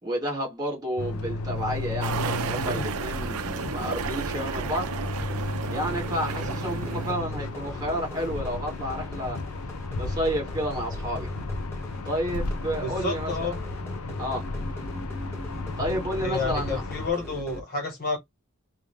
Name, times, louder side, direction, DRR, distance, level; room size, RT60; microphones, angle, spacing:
voice 1, 0.0-4.9 5.7-9.4 9.9-11.3 12.0-13.5 14.2-14.4 15.8-16.8, equal, 20° right, 2.2 m, -31 dB
sound 1, 1.0-17.1, left 2 dB, 85° left, 0.6 m, -33 dB
sound 2, 2.0-7.1, right 6 dB, 85° right, 0.5 m, -33 dB
sound 3, 5.9-17.6, left 1 dB, 10° left, 1.2 m, -43 dB
voice 2, 12.8-13.6 16.2-18.2, left 3 dB, 45° left, 1.3 m, -30 dB
3.6 x 2.4 x 3.3 m
head